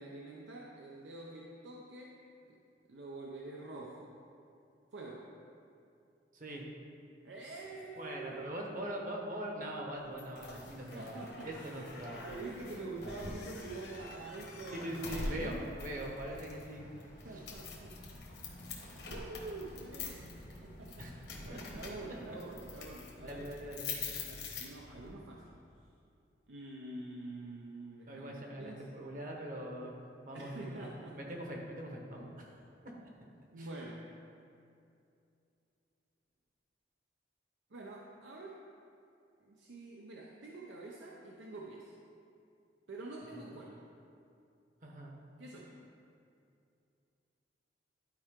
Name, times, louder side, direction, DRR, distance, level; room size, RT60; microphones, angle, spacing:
voice 1, 0.0-2.2 2.5-2.6 2.9-4.1 4.9-5.3 7.2-8.5 10.6-11.7 12.3-15.7 17.2-18.3 19.1-21.1 21.4-25.6 26.5-28.9 30.3-31.2 33.5-34.1 37.7-38.6 39.4-42.0 42.9-43.9 45.4-45.8, right 2 dB, 85° right, -2 dB, 0.6 m, -47 dB
voice 2, 6.3-6.7 8.0-11.1 11.4-12.3 14.7-16.9 17.3-17.4 18.8-19.1 21.0-21.2 21.5-21.6 23.2-23.9 25.0-25.1 28.1-29.9 30.2-30.9 31.2-32.5 33.6-33.7 43.3-43.4 44.8-45.1, right 1 dB, 45° right, 0 dB, 1.1 m, -42 dB
sound 1, 10.2-25.1, left 3 dB, 70° left, 1.2 m, -45 dB
11.5 x 4.6 x 3.6 m, 2.6 s
head